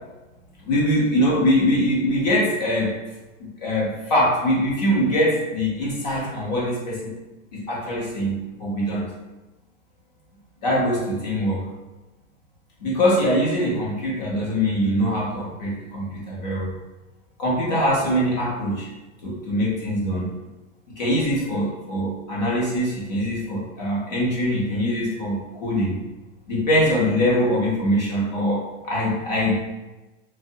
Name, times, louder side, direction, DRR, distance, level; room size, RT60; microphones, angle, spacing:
voice 1, 0.6-2.9 3.4-7.1 7.5-9.1 10.6-11.6 12.8-16.7 17.4-18.9 19.2-20.3 21.0-26.0 26.5-29.6, equal, 35° left, -5 dB, 0.6 m, -23 dB
2.7 x 2.0 x 2.6 m, 1.1 s
supercardioid pair, 180°, 38 cm